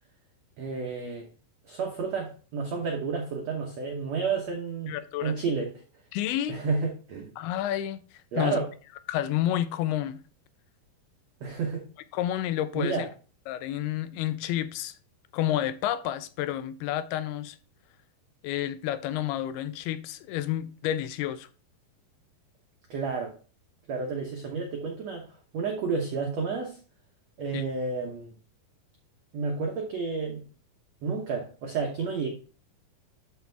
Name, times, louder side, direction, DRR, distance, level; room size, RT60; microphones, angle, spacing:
voice 1, 0.6-1.3 1.7-4.9 5.2-5.8 6.5-7.3 8.3-8.7 11.4-11.8 12.7-13.1 22.9-23.4 23.9-25.3 25.5-26.8 27.4-28.3 29.3-30.4 31.0-32.3, right 4 dB, 85° right, 1.4 m, -31 dB
voice 2, 4.9-5.3 6.1-6.6 7.4-8.0 8.4-8.7 9.1-10.2 12.1-13.1 13.5-14.9 15.3-17.6 18.4-21.5 27.5-27.7, left 12 dB, 80° left, 2.4 m, -30 dB
12.5 x 4.3 x 3.4 m
omnidirectional pair, 4.7 m